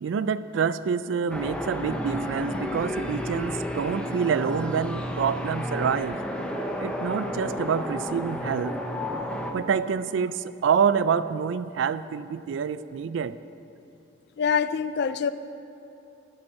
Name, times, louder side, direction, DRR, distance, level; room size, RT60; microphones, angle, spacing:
voice 1, 0.0-6.2 6.8-8.8 9.5-13.4, right 6 dB, 70° right, 15 dB, 0.3 m, -27 dB
sound 1, 1.3-9.5, equal, 5° left, 0.7 m, -31 dB
voice 2, 14.4-15.3, left 6 dB, 60° left, 13 dB, 0.4 m, -25 dB
12.5 x 7.9 x 4.7 m, 2.8 s
head